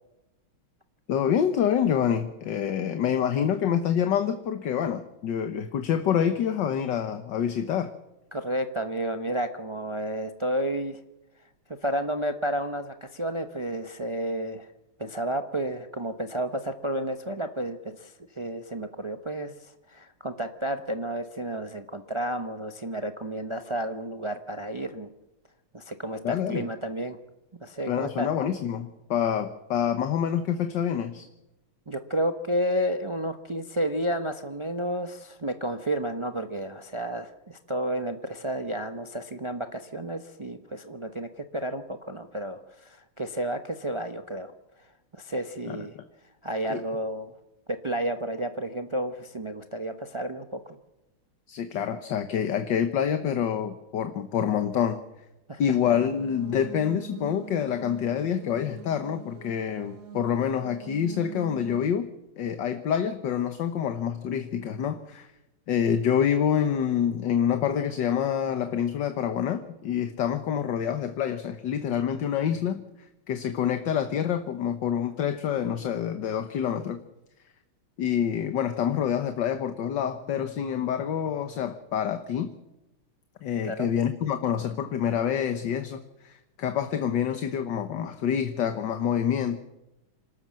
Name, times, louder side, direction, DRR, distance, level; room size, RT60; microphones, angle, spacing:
voice 1, 1.1-7.9 26.2-26.7 27.9-31.3 45.6-45.8 46.7-46.8 51.5-55.0 55.6-62.1 62.4-65.3 65.7-72.8 73.3-77.0 78.0-82.5 83.4-89.6, left 8 dB, 60° left, 9 dB, 1.7 m, -27 dB
voice 2, 8.3-11.0 11.8-14.7 15.0-25.1 25.7-27.2 27.6-28.3 31.9-44.5 45.1-45.9 46.4-47.3 47.7-50.8 55.5-55.6 83.6-83.9, right 1 dB, 45° right, 7 dB, 0.4 m, -31 dB
sound 1, 55.8-61.8, right 5 dB, 70° right, 4.4 m, -43 dB
27.5 x 13.0 x 7.6 m, 0.96 s
omnidirectional pair, 2.3 m